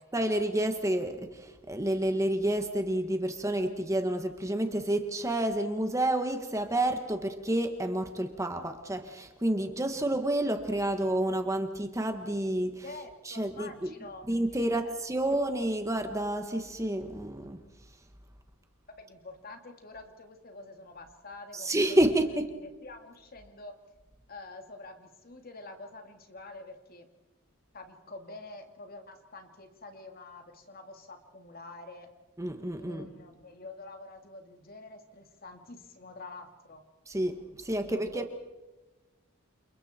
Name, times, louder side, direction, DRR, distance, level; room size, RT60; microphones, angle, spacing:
voice 1, 0.1-12.8 13.2-13.9 14.3-17.6 21.5-22.5 32.4-33.1 37.1-38.3, right 1 dB, 15° right, 6 dB, 1.4 m, -29 dB
voice 2, 12.8-14.9 19.0-22.3 22.5-23.7 24.3-27.1 27.7-32.1 32.8-36.8 37.8-38.3, left 2 dB, 45° left, 5 dB, 2.5 m, -47 dB
29.5 x 28.0 x 4.4 m, 1.1 s
head